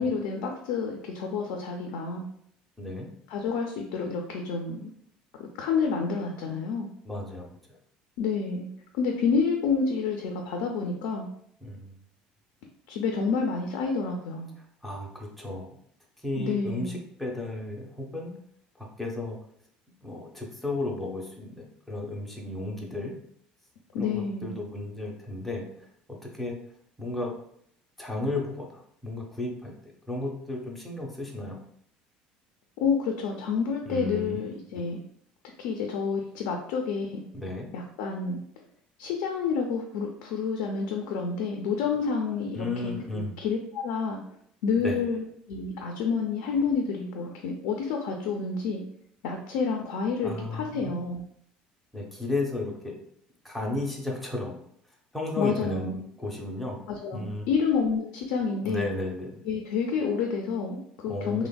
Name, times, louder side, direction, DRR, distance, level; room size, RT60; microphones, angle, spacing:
voice 1, 0.0-2.3 3.3-4.9 5.6-6.9 8.2-8.7 8.9-11.3 12.9-14.5 16.4-17.0 23.9-24.5 32.8-35.0 35.6-37.2 37.7-38.4 39.0-44.2 44.6-45.2 45.5-48.8 49.2-51.2 55.4-56.0 56.9-58.9 59.5-61.5, left 5 dB, 90° left, 2 dB, 0.4 m, -29 dB
voice 2, 2.8-3.1 7.0-7.8 11.6-12.0 14.8-15.7 16.2-18.3 18.8-19.4 20.0-23.1 24.0-26.6 27.0-27.3 28.0-29.7 30.1-31.6 33.8-34.4 37.3-37.7 42.5-43.4 44.8-45.0 50.2-50.9 51.9-53.0 53.4-54.6 55.1-56.8 57.1-57.5 58.6-59.4 61.1-61.5, left 2 dB, 5° left, -2 dB, 0.4 m, -34 dB
3.2 x 2.0 x 2.2 m, 0.69 s
cardioid pair, 155°, 3 cm